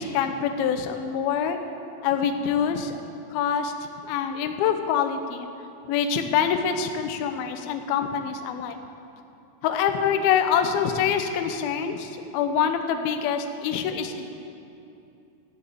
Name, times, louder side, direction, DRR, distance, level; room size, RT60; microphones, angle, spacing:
voice 1, 0.0-1.6 2.0-3.0 3.3-5.5 5.9-8.8 9.6-14.3, left 7 dB, 90° left, 6 dB, 2.1 m, -25 dB
13.0 x 8.0 x 8.5 m, 2.7 s
omnidirectional pair, 5.5 m